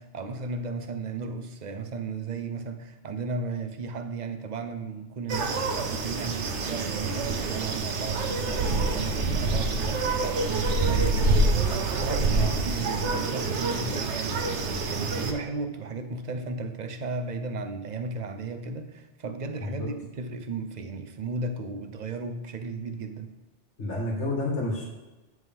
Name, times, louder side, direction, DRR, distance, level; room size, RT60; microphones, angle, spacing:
voice 1, 0.0-23.3, right 4 dB, 45° right, 8 dB, 0.7 m, -35 dB
sound 1, 5.3-15.3, right 3 dB, 75° right, 1.2 m, -27 dB
voice 2, 23.8-24.9, left 2 dB, 70° left, -2 dB, 2.1 m, -29 dB
9.1 x 6.3 x 3.6 m, 1.1 s
omnidirectional pair, 1.2 m